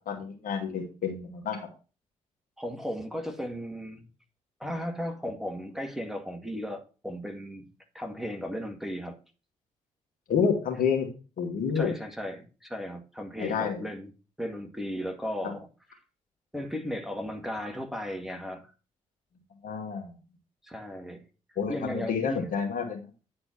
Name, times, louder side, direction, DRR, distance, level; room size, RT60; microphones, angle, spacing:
voice 1, 0.1-1.7 10.3-11.1 11.4-11.9 13.4-13.8 19.6-20.1 21.6-23.1, left 6 dB, 55° left, 2.2 m, -29 dB
voice 2, 2.6-4.1 4.6-7.7 7.9-9.2 11.8-14.1 14.4-15.7 16.5-18.7 20.6-21.2 21.7-22.4, equal, ahead, 2.0 m, -35 dB
9.8 x 4.3 x 5.9 m
figure-of-eight pair, 40°, 17 cm